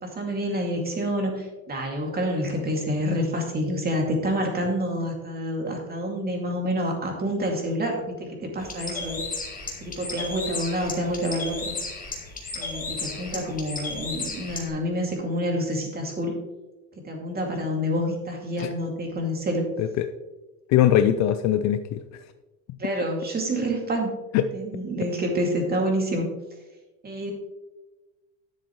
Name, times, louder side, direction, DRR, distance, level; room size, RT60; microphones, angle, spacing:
voice 1, 0.0-9.2 9.8-11.7 12.5-16.4 17.0-19.7 22.8-24.1 24.5-26.3 27.0-27.3, equal, 20° right, 1 dB, 2.3 m, -28 dB
Bird, 8.6-14.7, left 3 dB, 20° left, 1.9 m, -34 dB
voice 2, 20.7-22.0 24.3-24.5, left 11 dB, 45° left, 10 dB, 0.5 m, -21 dB
10.5 x 7.1 x 3.1 m, 1.1 s
supercardioid pair, 115°, 41 cm